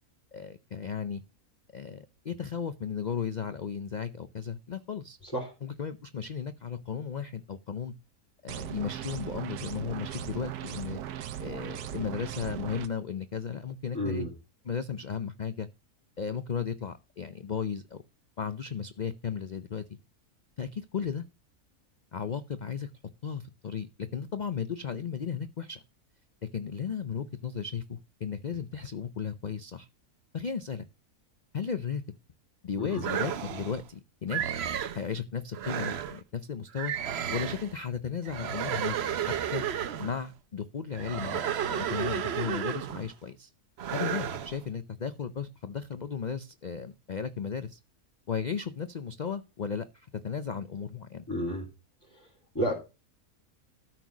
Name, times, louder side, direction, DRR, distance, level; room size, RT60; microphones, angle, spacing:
voice 1, 0.3-1.2 1.7-5.2 5.6-7.9 8.4-11.0 11.4-14.3 14.6-15.7 16.2-18.0 18.4-19.8 20.6-21.2 22.1-22.9 23.2-25.8 26.5-29.9 30.3-30.9 31.5-32.0 32.6-34.4 34.9-36.9 37.3-39.0 39.2-39.6 40.0-41.4 41.7-43.5 43.9-47.8 48.3-51.2, left 6 dB, 60° left, 11 dB, 0.4 m, -35 dB
voice 2, 5.2-5.5 13.9-14.3 32.8-33.0 51.3-51.6 52.1-52.3 52.5-52.7, equal, 10° left, -5 dB, 3.0 m, -31 dB
sound 1, 8.5-12.9, right 11 dB, 85° right, 1.2 m, -38 dB
sound 2, 33.0-33.8 34.3-35.0 35.5-36.2 36.7-37.7 38.2-40.2 40.9-43.1 43.8-44.6, right 9 dB, 55° right, 0.8 m, -32 dB
13.0 x 4.5 x 6.0 m, 0.29 s
omnidirectional pair, 1.6 m